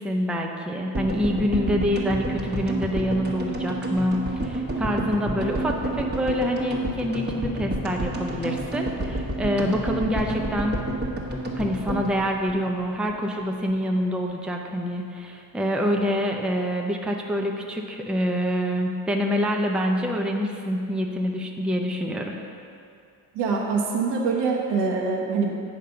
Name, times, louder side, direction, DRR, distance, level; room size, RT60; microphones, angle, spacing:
voice 1, 0.0-10.8 11.5-22.4, equal, ahead, 1 dB, 0.5 m, -26 dB
sound 1, 0.9-13.2 13.4-13.5 13.7-13.8, right 2 dB, 25° right, 1.3 m, -29 dB
voice 2, 23.3-25.5, right 4 dB, 90° right, -1 dB, 1.4 m, -24 dB
8.5 x 5.0 x 6.7 m, 2.5 s
cardioid pair, 140°, 40 cm